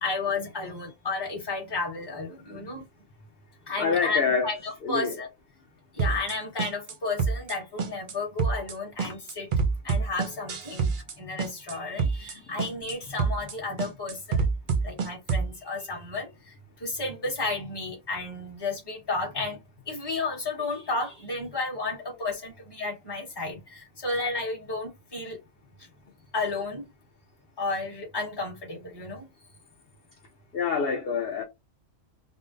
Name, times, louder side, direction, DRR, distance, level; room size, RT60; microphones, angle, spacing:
voice 1, 0.0-2.9 3.7-5.3 5.9-9.5 9.8-14.5 14.8-19.6 19.9-25.4 26.3-26.9 27.6-29.2, left 3 dB, 20° left, 1.2 m, -32 dB
voice 2, 3.8-4.5 4.8-5.2 12.5-12.7 30.5-31.4, left 5 dB, 55° left, 0.8 m, -27 dB
sound 1, 6.0-6.3 6.6-6.9 7.2-7.5 7.8-8.1 8.4-8.7 9.0-11.1 11.4-11.7 12.0-12.3 12.6-12.9 13.2-13.5 13.8-15.5, right 5 dB, 50° right, 0.7 m, -26 dB
3.6 x 2.1 x 2.5 m
omnidirectional pair, 1.4 m